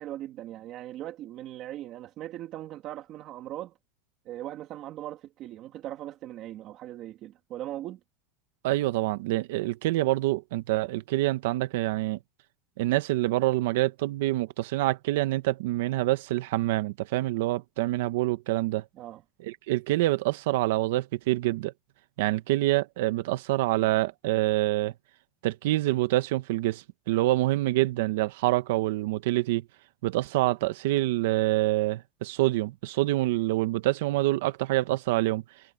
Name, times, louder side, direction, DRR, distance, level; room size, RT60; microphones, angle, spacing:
voice 1, 0.0-3.7 4.2-8.0 18.9-19.2, right 13 dB, 35° right, 2.7 m, -39 dB
voice 2, 8.6-12.2 12.8-18.8 19.4-21.7 22.2-24.9 25.4-29.6 30.0-35.4, right 17 dB, 75° right, 1.0 m, -26 dB
supercardioid pair, 170°, 0 cm